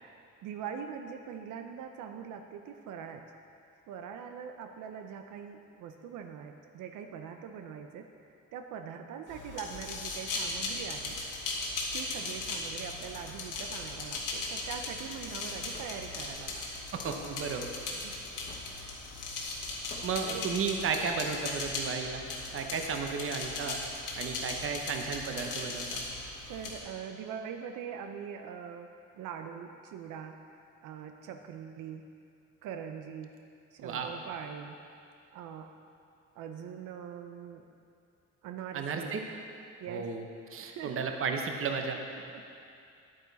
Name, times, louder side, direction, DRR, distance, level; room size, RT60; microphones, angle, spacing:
voice 1, 0.0-3.2 3.9-11.2 11.5-11.6 11.9-16.6 18.0-18.1 20.3-20.5 21.0-21.1 24.6-24.7 26.5-30.4 30.8-32.0 32.6-33.3 33.7-34.8 35.3-35.7 36.4-37.6 38.4-39.2 39.8-40.1 40.6-41.1, right 7 dB, 90° right, 5 dB, 0.7 m, -42 dB
sound 1, 9.3-26.8, left 3 dB, 80° left, 1.8 m, -38 dB
Hammer / Wood, 15.7-15.9 17.0-17.2 18.5-18.8 19.9-20.1, left 4 dB, 30° left, 1.0 m, -48 dB
voice 2, 16.9-17.7 20.0-22.2 22.5-23.8 24.2-26.0 33.8-34.2 38.7-39.2 39.9-40.2 40.5-42.0, right 5 dB, 45° right, 4 dB, 0.9 m, -33 dB
10.0 x 8.9 x 4.0 m, 2.5 s
cardioid pair, 140°, 30 cm